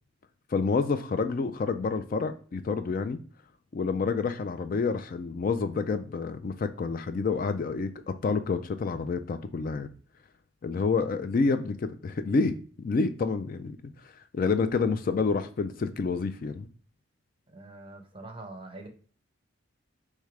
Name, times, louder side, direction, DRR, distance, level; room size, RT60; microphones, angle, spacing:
voice 1, 0.5-3.2 3.7-9.9 10.6-12.5 12.8-13.8 14.3-16.7, left 4 dB, 45° left, 0.3 m, -28 dB
voice 2, 17.5-18.9, right 2 dB, 25° right, 0.8 m, -44 dB
3.3 x 3.2 x 4.8 m
head